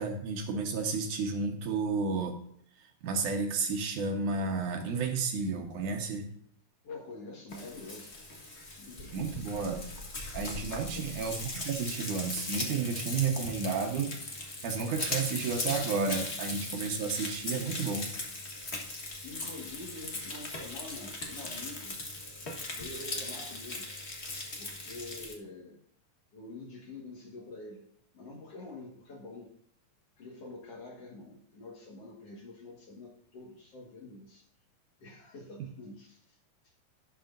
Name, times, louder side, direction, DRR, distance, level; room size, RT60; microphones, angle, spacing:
voice 1, 0.0-2.4 3.0-6.3 9.1-9.9 10.3-14.2 14.6-18.1, right 4 dB, 70° right, 3 dB, 2.5 m, -32 dB
voice 2, 6.8-8.1 8.8-9.3 10.6-11.1 19.2-22.0 22.8-23.9 24.6-25.8 26.3-27.8 28.1-29.5 30.2-34.5 35.0-36.4, left 2 dB, 50° left, 0 dB, 2.3 m, -46 dB
Frying (food), 7.5-25.3, left 2 dB, 70° left, 0.6 m, -39 dB
17.5 x 7.0 x 2.6 m, 0.65 s
omnidirectional pair, 3.9 m